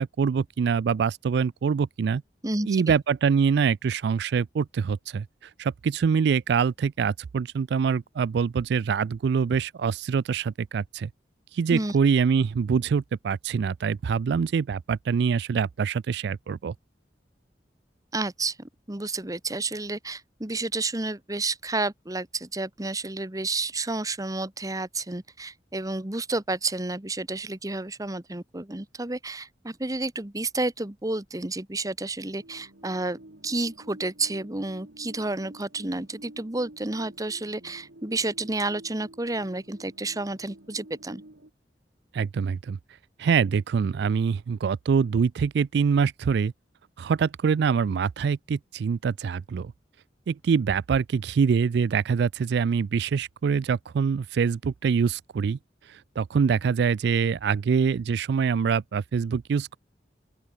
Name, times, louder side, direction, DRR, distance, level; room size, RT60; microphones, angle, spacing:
voice 1, 0.0-2.2 2.7-11.1 11.5-16.7 42.1-42.8 43.2-46.5 47.0-49.7 50.3-55.6 55.9-59.8, right 6 dB, 65° right, 0.3 m, -25 dB
voice 2, 18.1-33.2 33.4-41.2, right 2 dB, 20° right, 1.3 m, -30 dB
sound 1, 32.4-41.5, right 1 dB, 85° right, 2.4 m, -50 dB
open air
head